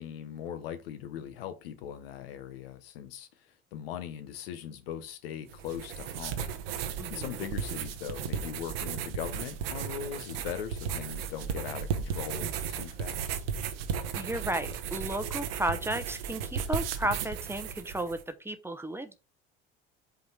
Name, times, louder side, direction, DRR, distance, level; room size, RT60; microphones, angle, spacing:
voice 1, 0.0-6.5 7.1-13.4, left 9 dB, 80° left, 1.0 m, -40 dB
sound 1, 5.5-18.2, right 7 dB, 80° right, 0.9 m, -35 dB
voice 2, 7.0-7.4 14.1-19.2, right 1 dB, 10° right, 0.8 m, -33 dB
5.2 x 4.0 x 4.5 m
hypercardioid pair, 75°, 29 cm